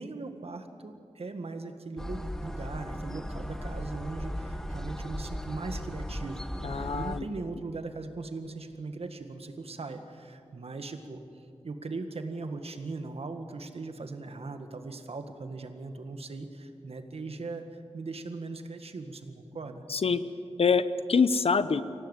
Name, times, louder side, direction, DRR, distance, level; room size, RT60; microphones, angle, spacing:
voice 1, 0.0-11.2 11.6-17.6 17.9-19.8, right 3 dB, 65° right, 7 dB, 1.8 m, -39 dB
sound 1, 2.0-7.2, equal, 5° left, 1.2 m, -37 dB
voice 2, 6.6-7.2 19.9-20.2 20.6-21.8, left 5 dB, 60° left, 13 dB, 0.9 m, -25 dB
24.5 x 17.5 x 8.3 m, 2.5 s
wide cardioid pair, 100°, 11 cm